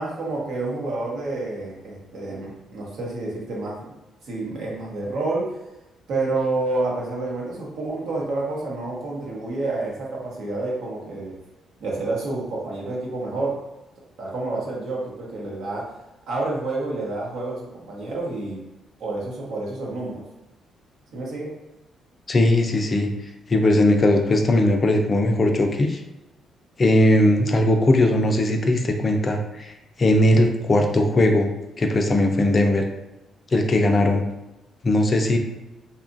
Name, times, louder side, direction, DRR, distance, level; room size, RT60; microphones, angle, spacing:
voice 1, 0.0-3.8 4.2-5.5 6.1-11.3 11.8-13.6 14.2-15.8 16.3-18.6 19.0-20.2 21.1-21.5, right 2 dB, 75° right, -4 dB, 0.9 m, -29 dB
voice 2, 22.3-23.1 23.5-26.0 26.8-29.7 30.0-31.5 31.8-32.9 33.5-34.2 34.8-35.4, left 1 dB, 35° left, 4 dB, 0.4 m, -19 dB
2.8 x 2.4 x 2.5 m, 0.96 s
cardioid pair, 90°, 0 cm